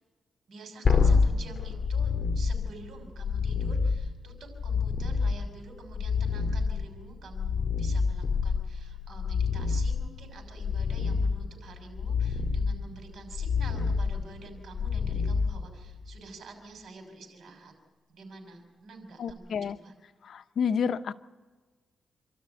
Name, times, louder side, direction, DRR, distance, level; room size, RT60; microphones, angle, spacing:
voice 1, 0.5-17.7 18.1-19.9, right 3 dB, 75° right, 5 dB, 6.2 m, -48 dB
sound 1, 0.8-16.1 19.3-19.4, left 5 dB, 55° left, 4.3 m, -28 dB
voice 2, 19.2-19.8 20.2-21.1, left 6 dB, 70° left, 11 dB, 0.8 m, -29 dB
28.0 x 13.0 x 9.2 m, 1.3 s
cardioid pair, 95°, 0 cm